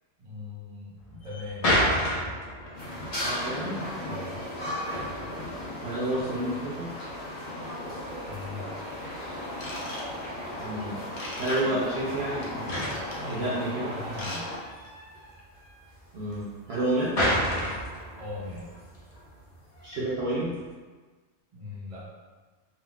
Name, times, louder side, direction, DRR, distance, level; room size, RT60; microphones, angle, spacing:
voice 1, 0.2-1.7 4.0-4.4 8.3-8.7 13.1-13.5 13.7-14.5 18.2-18.7 21.5-22.1, left 3 dB, 30° right, -6 dB, 0.7 m, -39 dB
sound 1, 1.0-20.7, equal, 55° left, 0.4 m, -34 dB
sound 2, 2.7-14.6, left 1 dB, 35° left, 0.9 m, -36 dB
voice 2, 3.2-3.8 5.8-6.9 10.6-11.0 11.4-12.8 13.3-14.0 16.1-17.2 19.8-20.5, right 1 dB, 60° right, -7 dB, 0.8 m, -30 dB
Ratchet pawl / Tools, 9.5-10.5 11.2-11.6 12.4-13.3 14.0-14.4 14.7-14.9 15.4-15.5, left 1 dB, 80° left, 1.1 m, -39 dB
3.6 x 2.3 x 2.3 m, 1.4 s
omnidirectional pair, 1.3 m